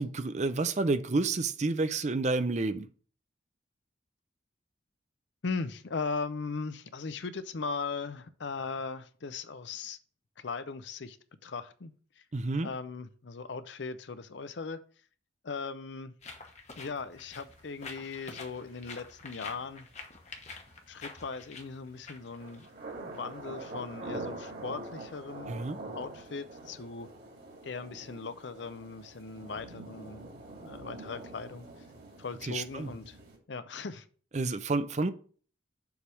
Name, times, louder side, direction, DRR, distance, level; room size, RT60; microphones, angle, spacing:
voice 1, 0.0-2.9 12.3-12.7 25.5-25.8 32.4-32.9 34.3-35.1, right 3 dB, 40° right, 0.5 m, -30 dB
voice 2, 5.4-10.0 10.4-11.2 11.4-11.9 12.6-14.8 15.4-16.1 16.7-19.9 20.9-22.7 23.0-25.6 25.9-27.1 27.6-30.3 30.6-31.6 32.2-33.2 33.5-34.0, left 4 dB, 70° left, 0.6 m, -38 dB
sound 1, 16.2-23.2, left 4 dB, 35° left, 1.0 m, -47 dB
sound 2, 22.3-33.4, right 2 dB, 55° right, 2.2 m, -44 dB
7.0 x 3.5 x 6.2 m
head